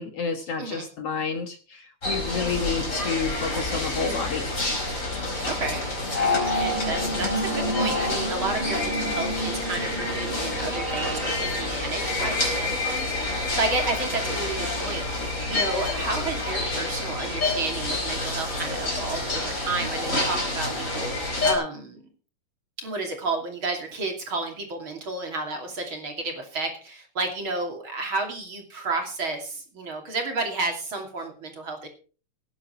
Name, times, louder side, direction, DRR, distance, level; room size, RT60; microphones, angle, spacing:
voice 1, 0.0-4.5, left 5 dB, 55° left, 6 dB, 2.0 m, -30 dB
sound 1, 2.0-21.5, left 2 dB, 25° left, 5.1 m, -28 dB
voice 2, 5.4-5.8 6.4-15.0 15.5-22.0 22.8-31.9, right 3 dB, 40° right, 3 dB, 3.3 m, -31 dB
sound 2, 6.1-10.7, left 1 dB, 85° left, 5.3 m, -29 dB
17.0 x 10.0 x 4.5 m, 0.39 s
omnidirectional pair, 3.7 m